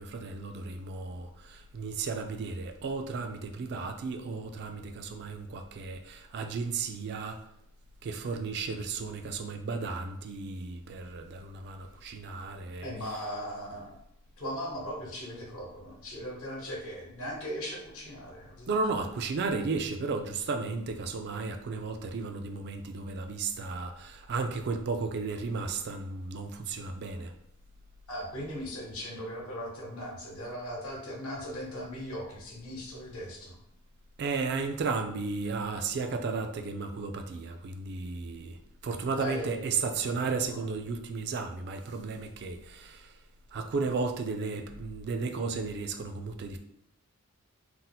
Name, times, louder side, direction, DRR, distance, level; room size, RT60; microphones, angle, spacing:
voice 1, 0.0-7.4 8.0-12.9 18.7-27.3 34.2-38.6 38.8-43.1 43.5-46.6, right 4 dB, 50° right, 0.3 m, -34 dB
voice 2, 12.8-14.0 14.4-18.7 28.1-33.6 39.2-40.7, equal, 75° left, 0.9 m, -39 dB
2.7 x 2.1 x 4.0 m
head